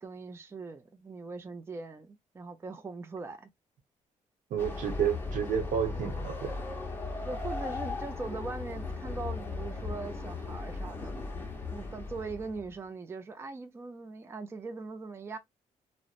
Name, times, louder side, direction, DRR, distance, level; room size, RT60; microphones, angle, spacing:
voice 1, 0.0-3.5 7.3-11.2 11.7-15.4, right 3 dB, 20° right, 0.4 m, -41 dB
voice 2, 4.5-6.5, right 8 dB, 75° right, 0.8 m, -30 dB
Train, 4.6-12.7, left 3 dB, 15° left, 0.8 m, -37 dB
2.9 x 2.0 x 2.3 m
cardioid pair, 120°, 14 cm